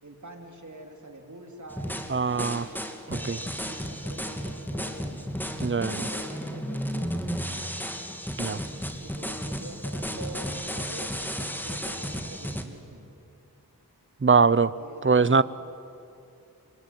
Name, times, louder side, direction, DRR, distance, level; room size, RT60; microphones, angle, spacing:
voice 1, 0.0-2.0 3.1-7.8 9.0-13.1 14.8-15.4, right 1 dB, 50° right, 3 dB, 3.6 m, -45 dB
sound 1, 1.7-12.6, equal, 5° left, 2.5 m, -33 dB
voice 2, 2.1-2.7 3.1-3.4 5.6-6.1 8.4-8.6 14.2-14.7 15.0-15.4, right 5 dB, 35° right, 17 dB, 0.8 m, -22 dB
26.5 x 23.5 x 9.3 m, 2.6 s
wide cardioid pair, 45°, 37 cm